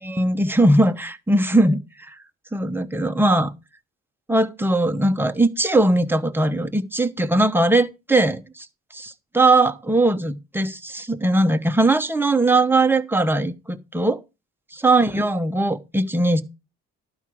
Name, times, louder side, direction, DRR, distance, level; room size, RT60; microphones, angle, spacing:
voice 1, 0.0-1.8 2.1-2.2 2.5-3.5 4.3-8.7 8.9-14.2 14.8-16.4, right 2 dB, 5° right, 1.0 m, -20 dB
12.0 x 4.8 x 6.1 m
cardioid pair, 90°, 30 cm